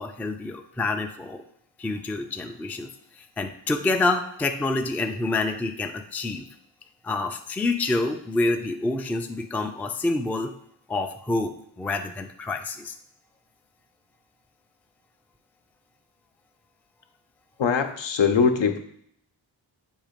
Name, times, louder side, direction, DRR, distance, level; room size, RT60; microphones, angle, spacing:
voice 1, 0.0-1.4 1.8-6.5 7.0-10.5 10.9-13.0, left 2 dB, 5° left, 5 dB, 0.3 m, -27 dB
voice 2, 17.6-18.8, left 6 dB, 70° left, 6 dB, 0.7 m, -21 dB
7.2 x 2.8 x 5.1 m, 0.68 s
wide cardioid pair, 120°, 46 cm